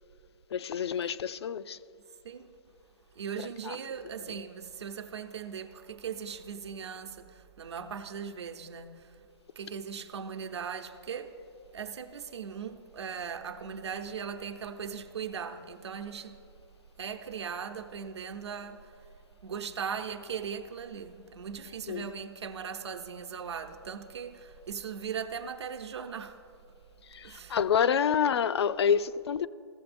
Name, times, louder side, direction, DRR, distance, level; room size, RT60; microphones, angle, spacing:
voice 1, 0.5-1.8 3.6-3.8 21.9-22.1 27.0-29.5, left 7 dB, 70° left, 0.4 m, -28 dB
voice 2, 3.1-9.2 9.6-11.4 11.7-16.4 17.0-19.0 19.4-26.4 27.2-27.6, right 7 dB, 75° right, 0.8 m, -39 dB
15.0 x 6.8 x 2.6 m
hypercardioid pair, 165°, 14 cm